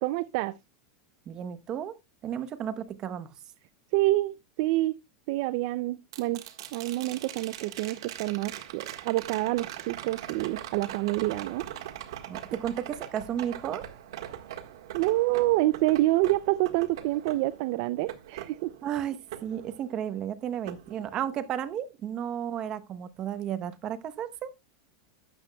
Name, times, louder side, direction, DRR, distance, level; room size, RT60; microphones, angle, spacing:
voice 1, 0.0-0.6 3.9-5.0 5.3-6.4 6.7-11.6 14.9-18.7, right 18 dB, 50° right, 0.4 m, -27 dB
voice 2, 1.3-3.3 12.3-13.8 18.8-24.5, right 9 dB, 30° right, 0.9 m, -33 dB
sound 1, 6.1-20.2 20.7-21.7 23.9-24.0, right 12 dB, 75° right, 1.5 m, -42 dB
12.5 x 8.5 x 2.3 m
supercardioid pair, 160°, 2 cm